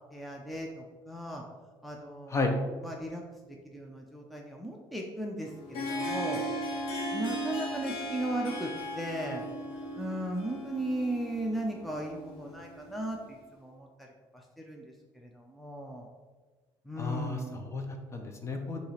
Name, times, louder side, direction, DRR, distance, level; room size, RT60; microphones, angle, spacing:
voice 1, 0.1-1.4 1.8-3.2 3.5-6.4 7.1-9.4 10.0-16.1 16.8-17.7, right 1 dB, ahead, 0 dB, 0.7 m, -37 dB
Harp, 5.4-13.2, equal, 70° left, 1.5 m, -37 dB
voice 2, 17.0-18.8, left 3 dB, 30° left, 4 dB, 1.0 m, -33 dB
7.0 x 3.0 x 5.7 m, 1.4 s
cardioid pair, 115°, 10 cm